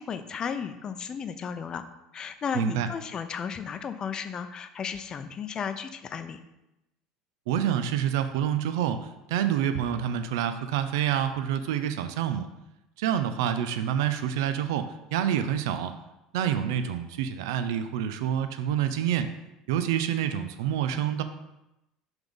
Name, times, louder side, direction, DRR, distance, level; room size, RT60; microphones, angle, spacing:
voice 1, 0.0-1.8 2.1-6.4, left 7 dB, 35° left, 10 dB, 0.6 m, -34 dB
voice 2, 2.5-2.9 7.5-12.5 13.0-15.9 16.3-19.3 19.7-21.2, right 9 dB, 80° right, 10 dB, 0.5 m, -27 dB
5.8 x 3.5 x 5.3 m, 0.90 s
supercardioid pair, 90°, 2 cm